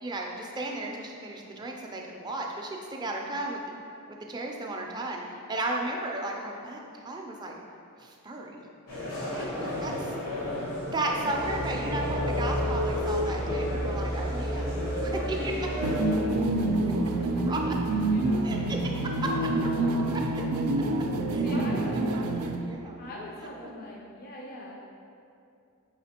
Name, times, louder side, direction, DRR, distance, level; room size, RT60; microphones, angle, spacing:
voice 1, 0.0-3.6 4.3-7.5 8.0-8.7 9.3-9.5 9.8-9.9 10.9-14.7 15.0-15.5 17.5-17.7 18.4-18.8 21.3-23.1, right 2 dB, 20° right, 0 dB, 0.4 m, -34 dB
sound 1, 8.9-16.2, left 1 dB, 80° left, 1.2 m, -34 dB
voice 2, 9.3-9.8 10.1-10.4 15.1-20.0 21.4-22.0 23.0-24.7, left 1 dB, 45° left, -3 dB, 0.4 m, -42 dB
sound 2, 11.1-22.6, equal, 65° left, 0.8 m, -35 dB
sound 3, 15.8-22.6, right 2 dB, 85° right, 0.4 m, -27 dB
4.9 x 3.8 x 2.8 m, 2.6 s
head